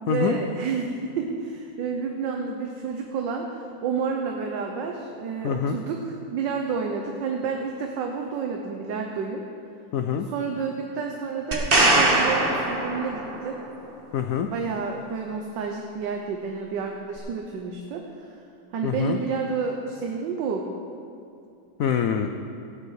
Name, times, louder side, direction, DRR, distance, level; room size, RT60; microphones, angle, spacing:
voice 1, 0.0-9.4 10.3-13.6 14.5-18.4 18.7-20.6, right 5 dB, 70° right, 2 dB, 1.5 m, -30 dB
voice 2, 5.4-5.8 9.9-10.3 14.1-14.5 18.8-19.2 21.8-22.3, left 8 dB, 90° left, 6 dB, 0.7 m, -25 dB
sound 1, 11.5-13.5 17.2-17.3, right 2 dB, 30° right, 1.3 m, -21 dB
16.5 x 9.5 x 4.8 m, 2.5 s
omnidirectional pair, 2.1 m